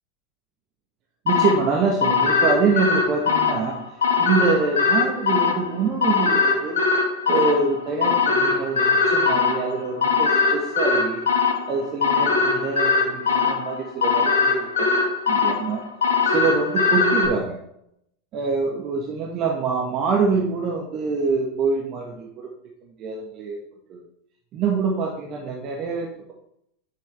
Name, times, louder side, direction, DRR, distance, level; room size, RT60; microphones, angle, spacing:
voice 1, 1.2-3.8 4.2-6.8 7.3-11.2 11.7-15.8 16.2-17.6 18.3-22.5 23.0-23.6 23.9-24.0 24.5-26.3, right 4 dB, 35° right, -1 dB, 1.6 m, -25 dB
sound 1, 1.3-17.3, left 4 dB, 65° left, 2.1 m, -21 dB
10.5 x 6.8 x 3.5 m, 0.74 s
figure-of-eight pair, 85°, 0 cm